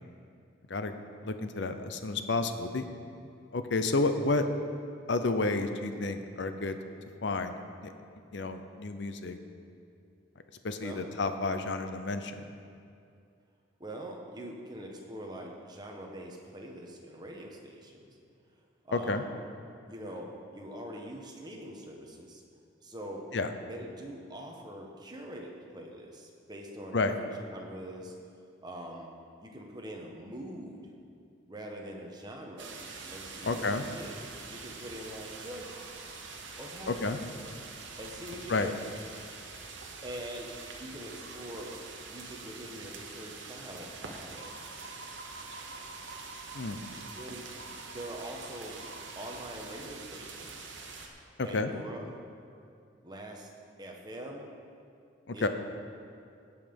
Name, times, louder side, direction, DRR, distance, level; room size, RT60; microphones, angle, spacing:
voice 1, 1.2-2.9 3.5-4.5 5.1-6.8 7.2-7.9 8.3-9.4 10.6-12.4 18.9-19.2 23.3-23.5 26.9-27.2 33.4-33.8 36.9-37.2 38.5-38.7 46.5-46.8 51.4-51.7 55.3-55.5, left 3 dB, 65° left, 8 dB, 0.7 m, -30 dB
voice 2, 10.8-11.1 13.8-18.2 18.8-19.3 19.9-22.4 22.8-23.3 23.7-28.1 28.6-29.1 29.4-30.9 31.5-32.8 33.1-34.1 34.5-35.9 36.6-36.9 38.0-38.7 40.0-40.5 40.8-41.7 42.1-44.5 47.2-47.5 47.9-48.8 49.1-50.7 51.4-52.2 53.0-53.5 53.8-54.5 55.3-55.5, right 1 dB, 20° right, 0 dB, 1.2 m, -43 dB
sound 1, 32.6-51.1, right 4 dB, 75° right, 1.1 m, -45 dB
16.5 x 5.7 x 5.3 m, 2.4 s
head